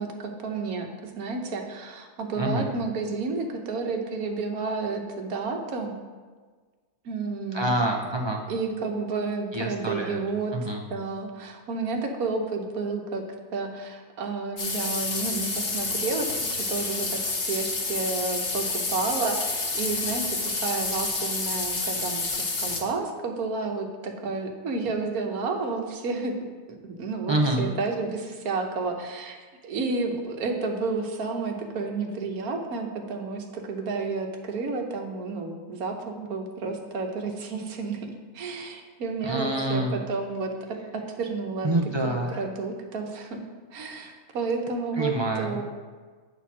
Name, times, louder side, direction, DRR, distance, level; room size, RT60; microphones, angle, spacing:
voice 1, 0.0-5.9 7.0-7.7 8.5-10.5 10.9-13.2 13.5-22.3 22.6-26.3 26.7-38.1 38.3-41.7 42.4-43.4 43.7-45.6, right 4 dB, 75° right, 3 dB, 1.4 m, -31 dB
voice 2, 2.4-2.7 7.5-8.4 9.5-10.2 10.5-10.8 27.3-27.7 39.2-40.0 41.6-42.4 45.0-45.6, right 1 dB, 35° right, 0 dB, 0.4 m, -26 dB
sound 1, 14.6-22.8, left 3 dB, 45° left, 1.2 m, -29 dB
9.2 x 4.3 x 6.1 m, 1.5 s
omnidirectional pair, 1.6 m